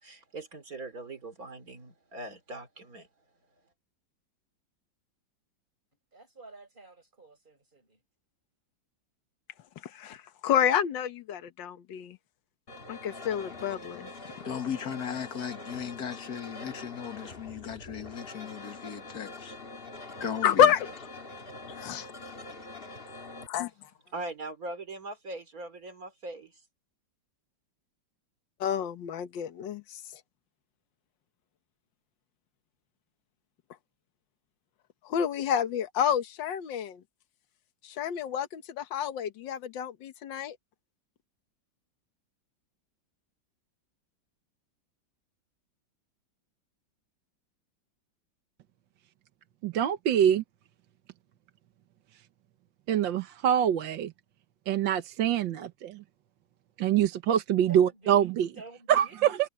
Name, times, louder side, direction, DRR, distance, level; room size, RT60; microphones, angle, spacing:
voice 1, 0.0-3.1 24.1-26.6, right 2 dB, 45° right, 3.4 m, -41 dB
voice 2, 6.1-8.0 57.7-59.4, right 3 dB, 25° right, 6.9 m, -50 dB
voice 3, 10.4-12.2 12.9-14.1 20.4-20.8 21.8-22.0 23.5-23.7 28.6-30.0 35.1-37.0 37.8-40.6, left 9 dB, 70° left, 1.9 m, -28 dB
sound 1, 12.7-23.5, left 2 dB, 30° left, 2.1 m, -44 dB
voice 4, 14.4-19.5 20.2-20.7, left 7 dB, 55° left, 2.1 m, -37 dB
voice 5, 49.6-50.4 52.9-54.1 54.7-56.0 56.8-58.5 58.9-59.3, right 10 dB, 75° right, 1.7 m, -25 dB
omnidirectional pair, 2.1 m